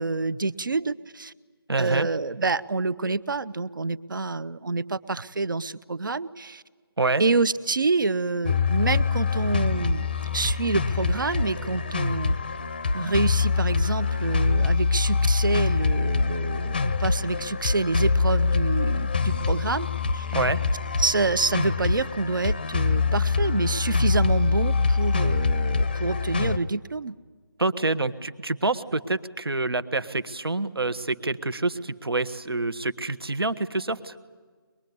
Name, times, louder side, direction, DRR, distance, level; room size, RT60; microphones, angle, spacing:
voice 1, 0.0-1.3 1.8-6.6 7.2-10.1 10.3-12.4 12.9-19.9 20.1-20.3 21.0-27.1, right 3 dB, 60° right, 17 dB, 0.8 m, -27 dB
voice 2, 1.7-2.1 7.0-7.2 20.3-20.6 27.6-34.2, right 3 dB, 75° right, 12 dB, 1.5 m, -27 dB
sound 1, 8.4-26.6, left 4 dB, 25° left, 0.7 m, -24 dB
23.5 x 22.0 x 9.6 m, 1.5 s
figure-of-eight pair, 170°, 13 cm